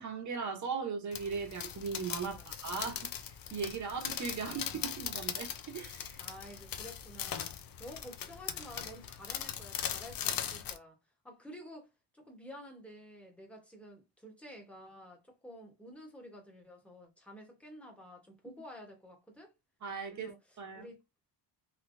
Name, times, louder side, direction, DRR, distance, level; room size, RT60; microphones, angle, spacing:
voice 1, 0.0-3.0 3.5-4.6 5.0-6.2 19.8-20.3 20.6-20.9, right 5 dB, 35° right, 1.0 m, -38 dB
sound 1, 1.1-10.8, left 9 dB, 50° left, 0.5 m, -40 dB
voice 2, 4.4-5.0 6.2-7.5 7.8-11.0 11.2-19.5 20.1-21.0, equal, 5° left, 1.1 m, -51 dB
3.3 x 2.9 x 2.6 m
cardioid pair, 115°, 47 cm